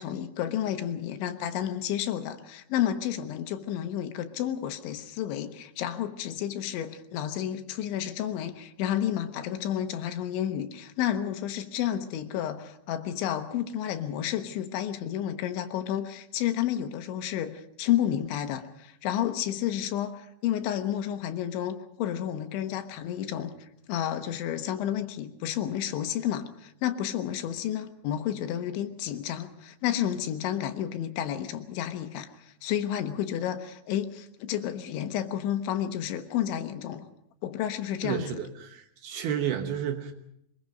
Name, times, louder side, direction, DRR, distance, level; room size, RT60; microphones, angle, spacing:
voice 1, 0.0-37.1 37.4-38.3, left 10 dB, 80° left, 8 dB, 3.5 m, -31 dB
voice 2, 38.0-40.1, right 9 dB, 70° right, 6 dB, 2.8 m, -31 dB
23.5 x 22.0 x 5.3 m, 0.75 s
omnidirectional pair, 5.4 m